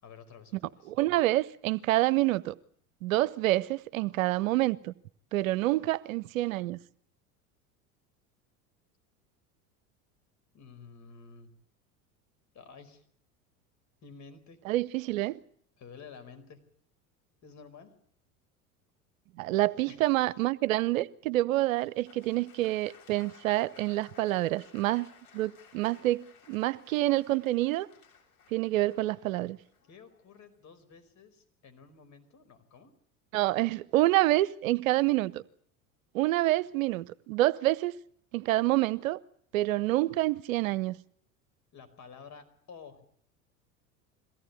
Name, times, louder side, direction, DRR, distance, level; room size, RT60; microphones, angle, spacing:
voice 1, 0.0-0.9 10.5-11.5 12.5-13.0 14.0-14.6 15.8-16.6 17.4-17.9 19.9-20.0 29.9-32.9 41.7-43.0, left 5 dB, 40° left, 5.1 m, -51 dB
voice 2, 0.9-2.5 3.0-4.9 5.3-6.8 14.7-15.4 19.4-25.1 25.3-27.9 28.5-29.6 33.3-35.4 36.1-37.9 38.3-39.2 39.5-41.0, right 17 dB, 65° right, 0.9 m, -27 dB
Applause, 21.7-30.6, left 7 dB, 70° left, 7.2 m, -58 dB
23.0 x 17.0 x 8.3 m
figure-of-eight pair, 75°, 43 cm